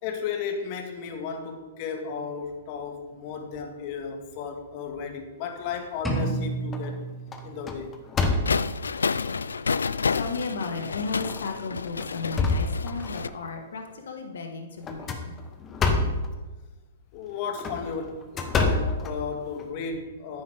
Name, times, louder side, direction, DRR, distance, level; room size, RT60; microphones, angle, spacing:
voice 1, 0.0-7.0 7.4-7.9 16.1-16.2 17.1-20.4, left 5 dB, 45° left, 4 dB, 1.7 m, -34 dB
sound 1, 5.7-6.3 6.7-7.0 7.3-8.9 9.6-9.7 10.2-10.3 11.2-11.4 11.9-13.3 14.8-16.3 17.4-19.7, left 3 dB, 20° left, 1.1 m, -27 dB
sound 2, 6.0-8.0, right 2 dB, 5° left, 1.9 m, -31 dB
sound 3, 8.4-13.3, left 5 dB, 90° left, 0.3 m, -29 dB
voice 2, 10.1-15.3, left 4 dB, 75° left, 4 dB, 1.6 m, -34 dB
10.0 x 9.4 x 3.6 m, 1.2 s
hypercardioid pair, 125°, 0 cm